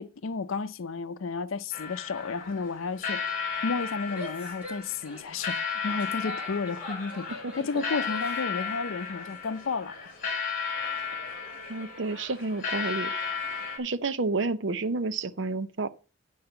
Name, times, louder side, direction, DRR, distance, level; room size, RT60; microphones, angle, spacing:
voice 1, 0.0-3.2 3.6-5.5 5.8-7.3 7.6-10.0, left 4 dB, 85° left, 0.6 m, -32 dB
sound 1, 1.7-13.8, left 6 dB, 40° left, 2.8 m, -34 dB
Female speech woman speaking / Yell, 4.0-8.4, equal, 5° right, 2.8 m, -43 dB
voice 2, 7.4-7.8 11.7-13.1 13.8-15.9, right 3 dB, 65° right, 0.6 m, -30 dB
9.6 x 4.7 x 6.8 m
head